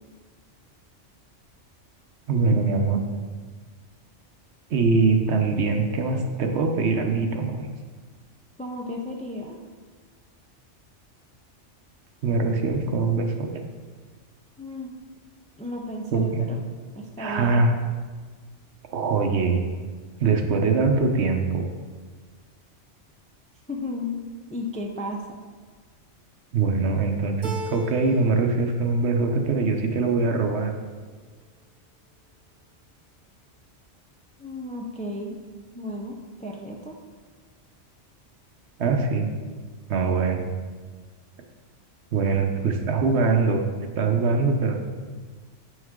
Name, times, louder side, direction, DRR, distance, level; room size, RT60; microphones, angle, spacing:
voice 1, 2.3-3.0 4.7-7.7 12.2-13.5 16.1-16.5 17.2-17.7 18.9-19.6 20.2-21.6 26.5-30.7 38.8-39.3 39.9-40.4 42.1-43.6 44.0-44.8, right 4 dB, 65° right, 4 dB, 1.0 m, -22 dB
voice 2, 8.6-9.6 14.6-14.9 15.6-16.6 17.0-17.6 23.7-24.2 24.5-25.2 34.4-35.4 35.7-37.0, left 1 dB, 10° left, 0 dB, 0.4 m, -34 dB
Keyboard (musical), 27.4-28.5 28.8-29.6, left 1 dB, 40° right, 1.1 m, -37 dB
7.6 x 6.3 x 3.7 m, 1.5 s
omnidirectional pair, 1.2 m